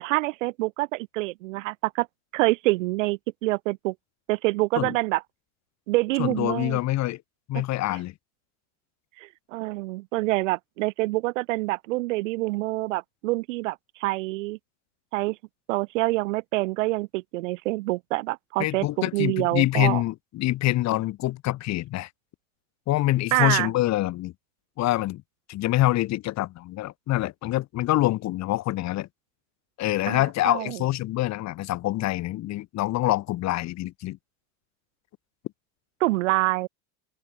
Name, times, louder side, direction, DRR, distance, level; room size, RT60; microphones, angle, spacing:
voice 1, 0.0-2.1 2.3-3.9 4.3-5.2 5.9-6.8 7.5-7.6 9.2-14.6 15.1-15.4 15.7-20.0 23.3-23.7 30.1-30.8 36.0-36.7, right 21 dB, 85° right, 3.3 m, -26 dB
voice 2, 6.2-7.2 7.5-8.1 18.6-22.1 22.9-24.3 24.8-25.2 25.5-29.1 29.8-34.2, left 16 dB, 45° left, 6.8 m, -25 dB
open air
supercardioid pair, 135°, 37 cm